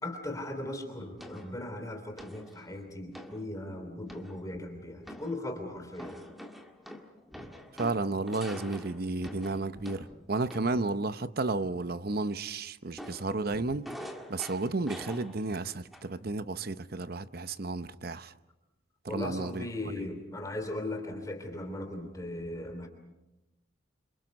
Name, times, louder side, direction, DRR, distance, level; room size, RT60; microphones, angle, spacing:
voice 1, 0.0-6.2 19.1-22.9, left 1 dB, 15° left, 3.1 m, -38 dB
sound 1, 1.2-1.6 2.2-2.6 3.1-3.4 4.1-4.7 5.1-5.4 5.9-10.9 13.0-15.6 15.9-16.3, equal, ahead, 1.7 m, -45 dB
voice 2, 7.7-13.9 14.3-18.3 19.0-19.7, right 3 dB, 45° right, 0.8 m, -32 dB
28.0 x 26.5 x 5.3 m
head